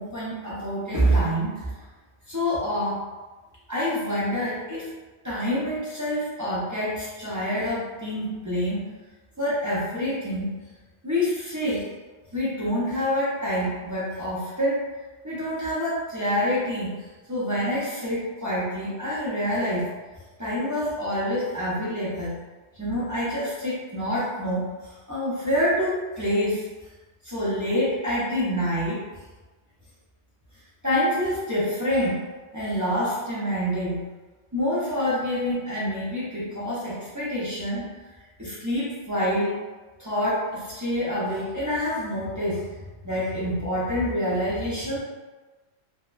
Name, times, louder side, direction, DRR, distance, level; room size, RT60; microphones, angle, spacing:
voice 1, 0.0-1.7 2.3-3.0 3.7-4.9 5.2-8.9 9.4-10.6 11.0-11.8 12.3-14.8 15.2-16.9 17.3-19.9 20.4-22.4 22.7-26.7 27.2-29.0 30.8-32.2 32.5-34.1 34.5-37.9 38.4-39.6 40.0-45.0, equal, 25° right, -10 dB, 0.4 m, -27 dB
2.7 x 2.1 x 2.3 m, 1.2 s
omnidirectional pair, 1.2 m